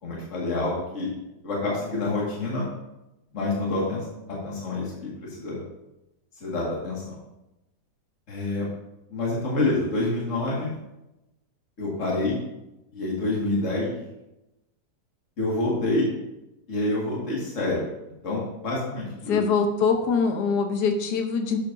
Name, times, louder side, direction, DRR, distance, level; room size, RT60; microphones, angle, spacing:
voice 1, 0.0-1.1 1.4-2.6 3.3-4.0 4.4-5.6 6.4-7.2 8.3-8.7 9.1-10.8 11.8-12.4 12.9-13.9 15.4-16.1 16.7-17.9 18.2-19.4, left 2 dB, 45° left, -5 dB, 2.2 m, -27 dB
voice 2, 19.3-21.6, left 5 dB, 75° left, 5 dB, 1.5 m, -23 dB
11.0 x 7.4 x 2.6 m, 0.94 s
omnidirectional pair, 1.8 m